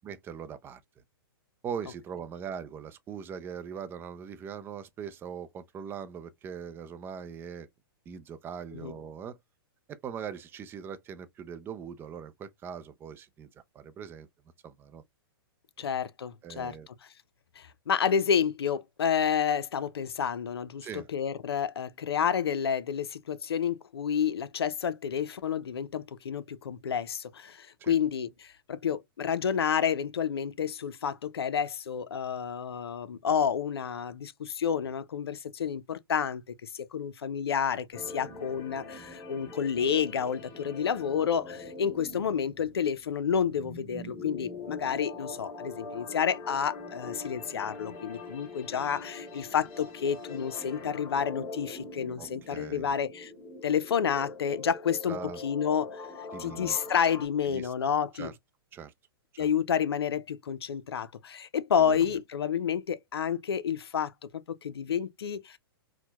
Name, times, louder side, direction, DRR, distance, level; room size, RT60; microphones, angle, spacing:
voice 1, 0.0-0.8 1.6-7.7 8.1-9.4 9.9-13.5 13.7-14.3 14.6-15.0 15.8-15.9 16.4-16.9 20.8-21.1 27.8-27.9 52.2-52.9 55.1-55.4 56.3-56.8 57.5-57.7 58.2-58.3 58.7-58.9 59.3-59.5 61.8-62.2, right 7 dB, 15° right, 0.4 m, -41 dB
voice 2, 15.8-16.8 17.6-53.3 53.6-56.0 56.4-58.3 59.4-65.6, left 7 dB, 90° left, 0.5 m, -30 dB
sound 1, 37.9-57.3, left 3 dB, 25° left, 1.5 m, -43 dB
4.4 x 2.1 x 2.2 m
hypercardioid pair, 135°, 13 cm